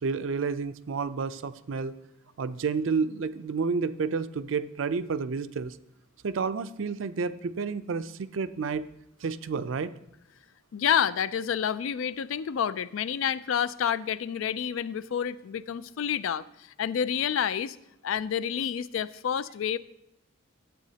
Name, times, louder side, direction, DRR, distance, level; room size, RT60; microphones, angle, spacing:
voice 1, 0.0-1.9 2.4-5.8 6.2-8.9 9.2-9.9, right 5 dB, 75° right, 13 dB, 0.5 m, -30 dB
voice 2, 10.7-17.8 18.0-19.8, left 8 dB, 80° left, 16 dB, 0.4 m, -29 dB
12.5 x 8.2 x 2.8 m, 0.80 s
head